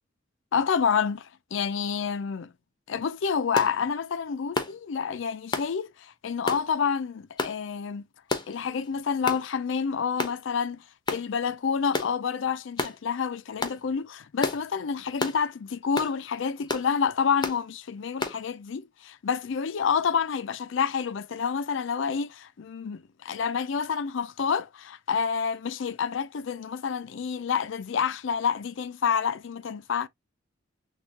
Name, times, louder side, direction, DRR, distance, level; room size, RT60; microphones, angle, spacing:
voice 1, 0.5-2.5 2.9-8.0 8.5-10.8 11.1-30.1, left 6 dB, 65° left, 0.4 m, -28 dB
sound 1, 3.6-3.7 4.6-4.8 5.5-5.7 6.5-6.7 7.4-7.6 8.3-8.6 9.3-9.4 10.2-10.4 11.1-11.3 11.9-12.1 12.8-13.0 13.6-13.8 14.4-14.6 15.2-15.4 16.0-16.1 16.7-16.9 17.4-17.6 18.2-18.4, left 3 dB, 20° left, 0.8 m, -30 dB
6.3 x 2.3 x 2.8 m
head